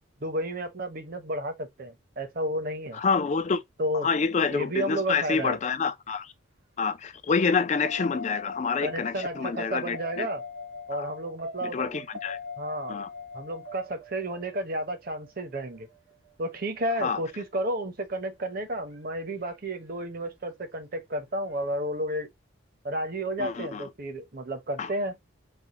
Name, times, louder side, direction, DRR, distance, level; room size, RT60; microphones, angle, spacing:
voice 1, 0.2-3.0 3.8-4.1 4.5-5.6 8.8-10.4 10.9-11.8 12.6-13.0 13.3-15.9 16.4-22.3 22.8-25.2, right 1 dB, 45° right, 0.8 m, -32 dB
voice 2, 2.9-3.6 4.0-6.3 6.8-10.3 10.9-11.1 11.6-12.4 12.9-13.1 17.0-17.2 23.4-23.9 24.8-24.9, left 5 dB, 35° left, 0.3 m, -27 dB
sound 1, 7.8-16.3 18.9-19.0, left 3 dB, 85° right, 1.6 m, -41 dB
3.4 x 2.1 x 4.0 m
head